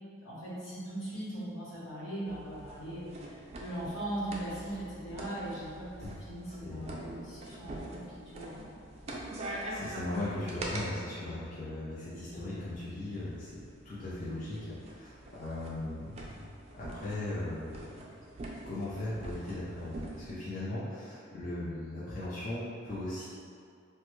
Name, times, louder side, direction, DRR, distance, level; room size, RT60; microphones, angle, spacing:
voice 1, 0.2-8.7, right 1 dB, 75° left, -10 dB, 1.2 m, -40 dB
sound 1, 2.3-10.9 12.1-20.3, right 1 dB, 30° right, 0.3 m, -45 dB
voice 2, 6.6-6.9 9.7-13.5 13.8-16.4 16.7-18.0 18.6-23.3, left 1 dB, 40° left, -11 dB, 0.5 m, -38 dB
3.1 x 2.2 x 3.0 m, 2.3 s
head